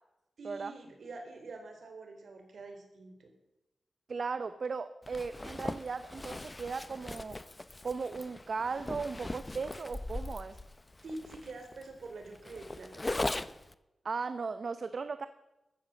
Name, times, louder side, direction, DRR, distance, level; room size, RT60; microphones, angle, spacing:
voice 1, 0.4-3.3 11.0-13.2, right 2 dB, 70° right, 4 dB, 4.4 m, -46 dB
voice 2, 4.1-7.4 7.8-10.6 14.0-15.3, right 4 dB, 55° right, 12 dB, 0.8 m, -37 dB
Zipper (clothing), 5.0-13.7, left 2 dB, 20° left, 0.7 m, -40 dB
15.0 x 13.0 x 7.1 m, 0.95 s
wide cardioid pair, 100°, 0 cm